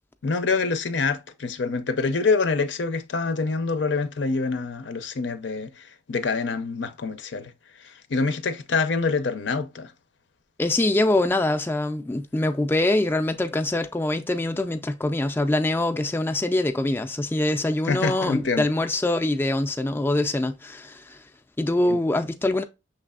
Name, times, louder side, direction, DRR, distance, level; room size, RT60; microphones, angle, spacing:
voice 1, 0.2-5.7 6.1-7.5 8.1-9.9 17.9-18.7 21.9-22.0, left 4 dB, 85° left, 0.6 m, -25 dB
voice 2, 10.6-21.2 21.6-22.6, left 2 dB, 10° left, 0.3 m, -24 dB
5.9 x 3.2 x 2.3 m
head